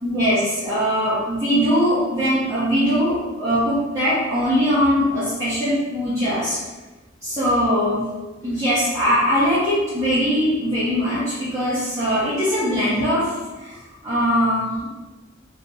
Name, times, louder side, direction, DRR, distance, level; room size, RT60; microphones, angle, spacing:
voice 1, 0.0-6.6 7.2-8.0 8.4-14.8, equal, 15° right, -14 dB, 1.0 m, -21 dB
3.0 x 2.6 x 3.8 m, 1.2 s
head